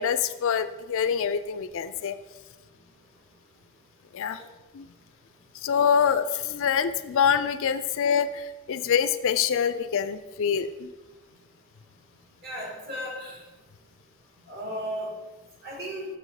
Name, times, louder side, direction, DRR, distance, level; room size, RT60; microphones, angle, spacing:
voice 1, 0.0-2.2 4.1-4.4 4.7-4.9 5.6-10.9, left 7 dB, 60° left, 12 dB, 0.4 m, -25 dB
voice 2, 12.4-13.3 14.5-15.1 15.6-16.1, equal, 50° right, -3 dB, 2.4 m, -35 dB
7.6 x 5.0 x 4.8 m, 1.2 s
head